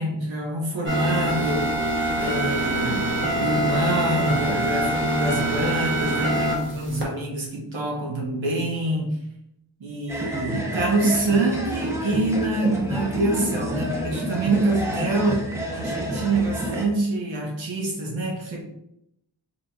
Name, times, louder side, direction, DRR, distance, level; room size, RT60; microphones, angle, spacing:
voice 1, 0.0-1.9 2.2-9.2 9.8-18.6, right 2 dB, 80° right, -1 dB, 1.2 m, -26 dB
sound 1, 0.9-7.0, right 1 dB, 25° right, 0.9 m, -25 dB
sound 2, 10.1-16.9, equal, 5° right, 0.6 m, -29 dB
4.0 x 3.6 x 2.3 m, 0.80 s
wide cardioid pair, 135°, 46 cm